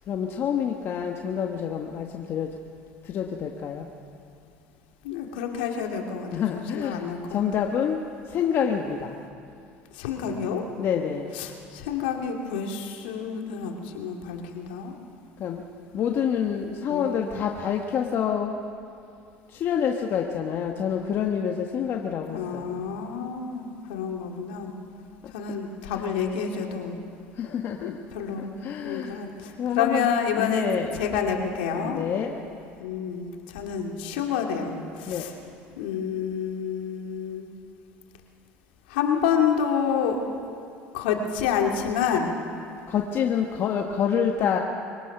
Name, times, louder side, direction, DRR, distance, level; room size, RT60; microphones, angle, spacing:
voice 1, 0.1-2.5 3.0-3.9 6.3-8.0 8.3-9.2 10.8-11.3 15.4-15.6 15.9-18.6 19.5-22.8 27.4-27.9 28.6-29.2 29.6-30.1 30.3-30.9 31.8-32.3 35.1-35.3 42.9-44.6, left 8 dB, 50° left, 2 dB, 1.4 m, -27 dB
voice 2, 5.0-7.4 9.9-10.7 11.3-14.9 16.9-17.3 22.3-24.7 25.3-27.0 27.8-32.0 32.8-35.3 35.8-37.5 38.9-40.2 40.9-42.4, left 7 dB, 85° left, 2 dB, 2.4 m, -29 dB
23.5 x 18.0 x 6.1 m, 2.5 s
supercardioid pair, 95°, 5 cm